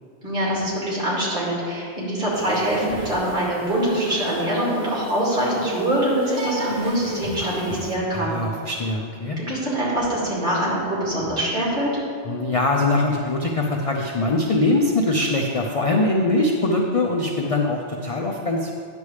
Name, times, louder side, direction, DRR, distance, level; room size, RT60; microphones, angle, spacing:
voice 1, 0.2-8.4 9.5-11.9, right 1 dB, 50° right, -7 dB, 2.5 m, -24 dB
sound 1, 2.3-7.9, right 1 dB, 70° right, 1.3 m, -34 dB
voice 2, 8.1-9.4 12.2-18.7, left 2 dB, 45° left, 1 dB, 0.4 m, -22 dB
9.6 x 6.9 x 3.2 m, 2.3 s
omnidirectional pair, 1.2 m